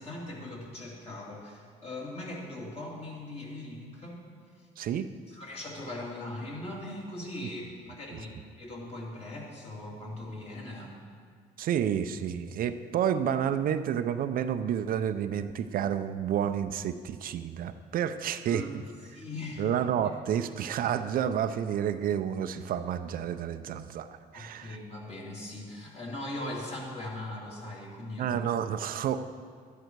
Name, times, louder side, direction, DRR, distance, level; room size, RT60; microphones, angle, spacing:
voice 1, 0.0-4.2 4.5-4.7 5.3-11.0 18.5-18.7 19.0-19.6 20.0-20.1 24.3-28.4, left 1 dB, 35° left, -3 dB, 2.8 m, -40 dB
voice 2, 4.8-5.1 11.6-18.8 19.6-24.1 24.3-24.8 28.2-29.2, right 9 dB, 60° right, 10 dB, 0.5 m, -30 dB
12.5 x 10.5 x 4.6 m, 2.1 s
cardioid pair, 110°, 17 cm